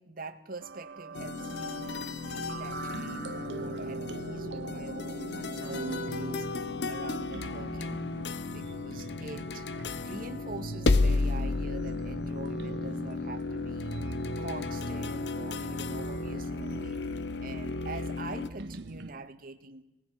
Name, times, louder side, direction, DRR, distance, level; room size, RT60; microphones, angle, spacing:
voice 1, 0.0-1.9 2.3-6.5 6.9-8.1 8.5-9.7 10.0-14.0 14.4-17.0 17.4-19.8, right 3 dB, 55° right, 7 dB, 1.8 m, -44 dB
sound 1, 0.6-19.1, right 3 dB, 80° right, 0.9 m, -41 dB
sound 2, 1.1-18.5, left 3 dB, 75° left, 0.8 m, -33 dB
Clapping, 5.6-6.3, equal, 25° left, 5.9 m, -59 dB
25.0 x 20.0 x 6.0 m, 0.98 s
head